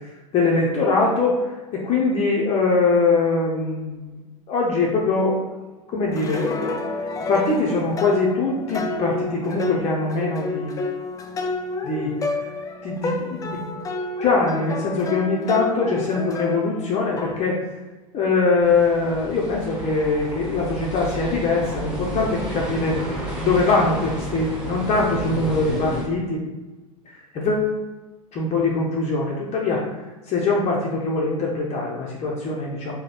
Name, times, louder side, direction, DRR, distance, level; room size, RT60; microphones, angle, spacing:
voice 1, 0.3-1.5 1.7-4.1 4.5-5.6 5.9-6.8 7.3-10.7 11.8-12.1 12.8-13.6 14.2-17.6 18.1-23.0 23.4-26.4 27.3-27.7 28.3-29.8 30.3-32.9, left 3 dB, 35° left, -3 dB, 0.7 m, -22 dB
sound 1, 5.9-17.4, left 2 dB, 20° left, 0.4 m, -29 dB
sound 2, 18.6-26.0, right 1 dB, 5° right, 1.5 m, -31 dB
3.1 x 2.2 x 4.1 m, 1.2 s
hypercardioid pair, 85°, 18 cm